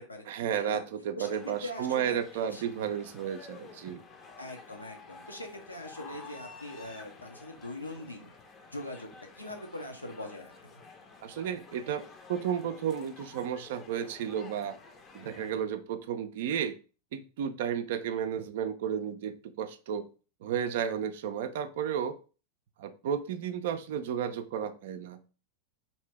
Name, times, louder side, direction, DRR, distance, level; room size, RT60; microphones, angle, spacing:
voice 1, 0.3-4.0 11.2-12.0 12.3-14.7 15.1-16.8 17.1-20.1 20.4-22.2 22.8-25.3, right 8 dB, 55° right, 9 dB, 0.4 m, -33 dB
voice 2, 1.2-2.6 4.4-8.3 8.7-9.1 9.4-10.8, left 1 dB, 85° left, 2 dB, 0.7 m, -42 dB
sound 1, 1.2-15.5, left 4 dB, 25° left, 0.6 m, -51 dB
2.7 x 2.7 x 3.4 m, 0.36 s
figure-of-eight pair, 90°, 0 cm